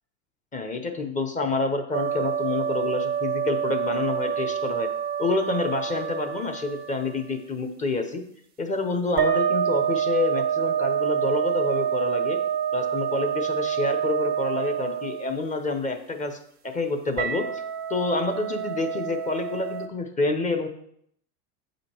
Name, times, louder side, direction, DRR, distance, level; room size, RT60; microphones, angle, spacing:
voice 1, 0.5-4.9 5.2-8.2 8.6-12.4 12.7-16.4 16.6-17.6 17.9-20.7, left 3 dB, 15° left, 6 dB, 0.7 m, -28 dB
sound 1, 1.9-7.2 9.2-15.5 17.2-19.9, right 8 dB, 20° right, 0.6 m, -27 dB
8.0 x 5.2 x 4.4 m, 0.68 s
hypercardioid pair, 115°, 50 cm